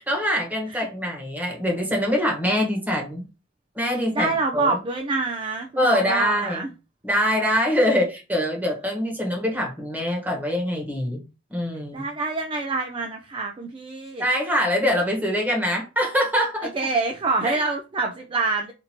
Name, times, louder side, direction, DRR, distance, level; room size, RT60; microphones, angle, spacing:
voice 1, 0.0-3.2 3.7-4.8 5.8-6.7 7.0-11.2 11.5-12.1 14.2-16.7, equal, 10° right, 1.1 m, -24 dB
voice 2, 4.1-6.7 11.9-14.3 16.6-18.7, right 3 dB, 25° right, 0.3 m, -26 dB
4.3 x 2.7 x 2.8 m
head